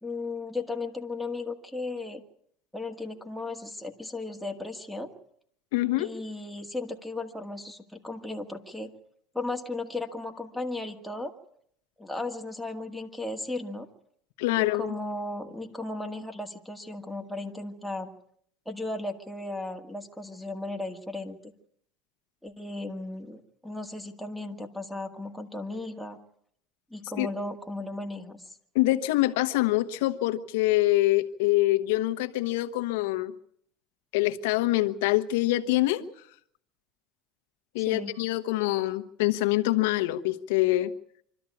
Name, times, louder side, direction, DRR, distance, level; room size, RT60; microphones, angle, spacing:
voice 1, 0.0-2.2 2.7-5.1 6.0-8.9 9.3-11.3 12.0-13.9 14.5-18.1 18.7-21.5 22.4-26.2 26.9-28.4 37.8-38.1, left 2 dB, ahead, 2 dB, 1.9 m, -35 dB
voice 2, 5.7-6.1 14.4-14.9 27.2-27.3 28.7-33.3 34.1-36.0 37.7-40.9, left 17 dB, 85° left, 8 dB, 1.2 m, -25 dB
25.5 x 13.0 x 8.5 m, 0.68 s
supercardioid pair, 115°, 0 cm